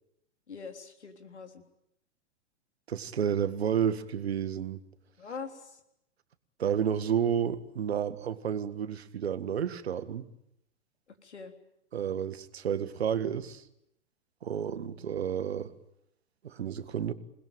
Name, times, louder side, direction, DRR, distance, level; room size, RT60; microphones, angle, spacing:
voice 1, 0.5-1.6 5.2-5.8 11.1-11.5, left 5 dB, 70° left, 6 dB, 3.7 m, -43 dB
voice 2, 2.9-4.8 6.6-10.3 11.9-13.6 14.4-15.7 16.4-17.1, right 8 dB, 60° right, 12 dB, 1.8 m, -31 dB
28.0 x 20.5 x 9.2 m, 0.82 s
figure-of-eight pair, 105°, 35 cm